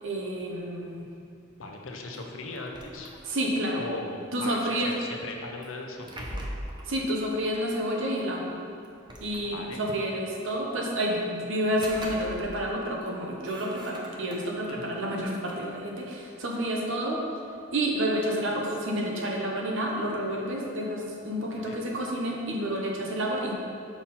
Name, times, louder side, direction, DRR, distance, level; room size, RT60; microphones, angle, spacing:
voice 1, 0.0-1.1 3.3-3.8 4.3-4.9 6.9-8.5 9.2-17.2 17.7-23.5, equal, 65° right, -1 dB, 1.0 m, -29 dB
voice 2, 1.6-3.1 3.8-6.5 9.4-9.8 14.7-15.0 21.5-21.9, left 2 dB, 70° left, 1 dB, 0.8 m, -39 dB
sound 1, 2.5-3.7 5.6-7.0 8.2-8.3 8.8-9.9 11.5-12.7 13.0-14.7 15.2-16.8, right 1 dB, 20° right, 0.7 m, -42 dB
5.8 x 5.5 x 4.3 m, 2.4 s
head